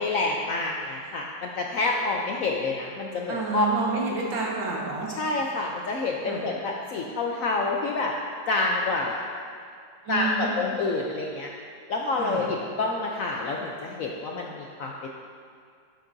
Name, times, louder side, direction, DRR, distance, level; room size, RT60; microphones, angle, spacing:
voice 1, 0.0-3.7 3.9-4.0 5.1-8.1 8.5-9.2 10.1-11.5 11.9-15.1, left 3 dB, 70° left, 0 dB, 0.8 m, -28 dB
voice 2, 3.3-5.1 6.2-6.5 10.1-10.5 12.2-12.5, right 4 dB, 85° right, -3 dB, 2.1 m, -29 dB
12.0 x 7.6 x 2.6 m, 2.2 s
omnidirectional pair, 2.0 m